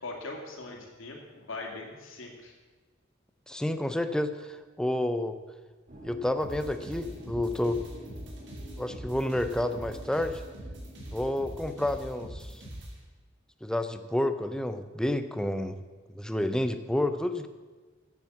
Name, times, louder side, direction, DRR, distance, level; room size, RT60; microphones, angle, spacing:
voice 1, 0.0-2.5, left 3 dB, 85° left, 1 dB, 2.2 m, -41 dB
voice 2, 3.5-5.4 6.0-7.8 8.8-10.4 11.1-12.6 13.6-15.8 16.1-17.5, left 1 dB, 5° left, 9 dB, 0.5 m, -30 dB
sound 1, 5.9-12.2, right 1 dB, 40° right, 2.1 m, -49 dB
sound 2, 6.4-12.9, right 1 dB, 65° right, 2.8 m, -42 dB
8.9 x 8.3 x 7.3 m, 1.3 s
head